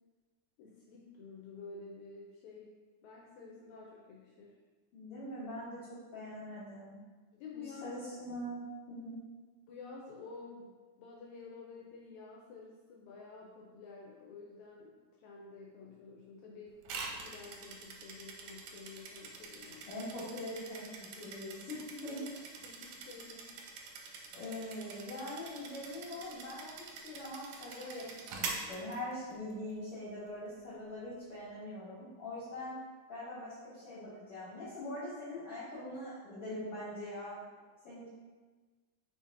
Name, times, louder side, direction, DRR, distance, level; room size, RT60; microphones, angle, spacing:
voice 1, 0.6-2.7 3.0-4.5 7.3-8.0 9.7-10.7 11.0-16.8 17.1-19.9 22.1-22.2 22.6-23.5, left 4 dB, 80° left, -3 dB, 1.8 m, -50 dB
voice 2, 4.9-5.8 6.1-7.0 7.5-9.2 19.9-22.3 24.3-32.8 33.1-37.4 37.8-38.1, left 1 dB, 60° left, -10 dB, 1.6 m, -43 dB
sound 1, 16.8-29.5, right 4 dB, 80° right, 1.7 m, -45 dB
5.1 x 3.9 x 2.6 m, 1.3 s
omnidirectional pair, 3.7 m